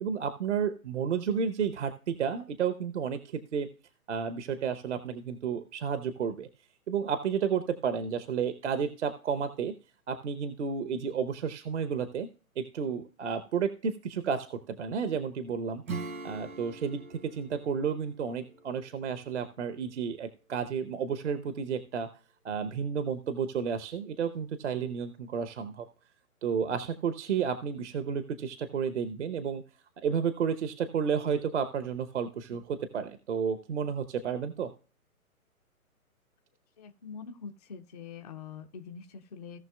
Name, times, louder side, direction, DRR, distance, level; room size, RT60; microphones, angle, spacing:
voice 1, 0.0-3.7 4.1-6.5 6.9-9.7 10.1-12.3 12.6-15.8 16.2-22.1 22.4-25.9 26.4-29.6 30.0-34.7, right 6 dB, 50° right, 11 dB, 0.9 m, -31 dB
Acoustic guitar / Strum, 15.8-20.1, right 4 dB, 70° right, 1.9 m, -43 dB
voice 2, 36.8-39.6, left 6 dB, 30° left, 4 dB, 0.5 m, -44 dB
17.5 x 5.9 x 2.3 m, 0.36 s
figure-of-eight pair, 140°, 44 cm